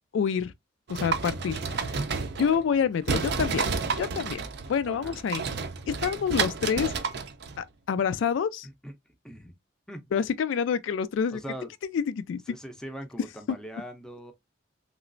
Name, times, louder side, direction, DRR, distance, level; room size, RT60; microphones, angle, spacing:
voice 1, 0.1-0.5 0.9-1.9 2.4-3.6 4.0-4.4 4.7-5.4 5.9-6.9 7.6-8.7 10.1-11.4 11.9-12.4 13.5-13.6, left 7 dB, 75° left, 0.3 m, -27 dB
sound 1, 0.9-2.8 3.1-7.6, right 5 dB, 60° right, 0.5 m, -31 dB
voice 2, 4.9-5.2 8.6-8.9 9.2-9.5 9.9-10.1 11.3-11.7 12.5-14.3, right 1 dB, 5° left, 0.5 m, -41 dB
3.1 x 3.0 x 2.4 m
head